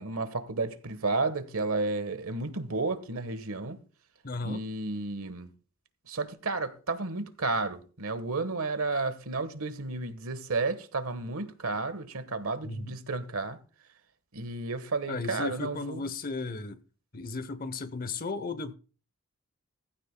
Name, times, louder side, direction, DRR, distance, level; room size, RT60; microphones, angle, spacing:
voice 1, 0.0-3.8 4.4-5.5 6.1-13.6 14.3-16.0, right 3 dB, 85° right, 1.3 m, -32 dB
voice 2, 4.2-4.6 12.6-13.0 15.1-16.8 17.1-18.7, left 3 dB, 40° left, 0.8 m, -35 dB
16.0 x 14.5 x 2.2 m
head